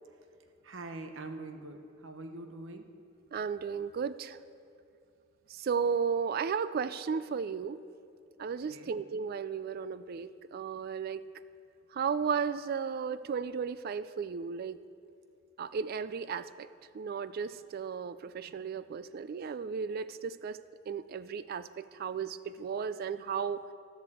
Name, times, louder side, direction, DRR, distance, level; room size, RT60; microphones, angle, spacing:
voice 1, 0.6-2.9 8.7-8.9, right 2 dB, 80° right, 6 dB, 0.9 m, -44 dB
voice 2, 3.3-4.4 5.5-7.8 8.4-11.2 11.9-14.8 15.6-16.7 16.9-20.6 20.9-23.6, right 6 dB, 50° right, 15 dB, 0.3 m, -34 dB
11.0 x 7.7 x 7.6 m, 2.5 s
head